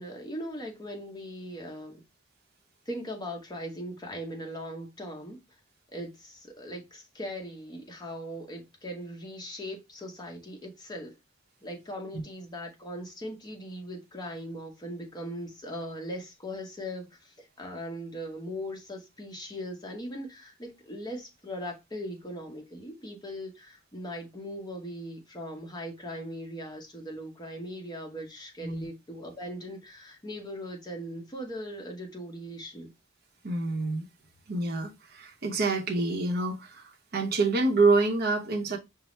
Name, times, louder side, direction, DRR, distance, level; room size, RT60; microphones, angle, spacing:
voice 1, 0.0-2.0 2.9-5.4 5.9-11.1 11.6-32.9, equal, 20° left, 0.8 m, -39 dB
voice 2, 33.4-34.0 34.5-38.8, right 3 dB, 50° right, 0.7 m, -27 dB
5.4 x 2.0 x 3.1 m
head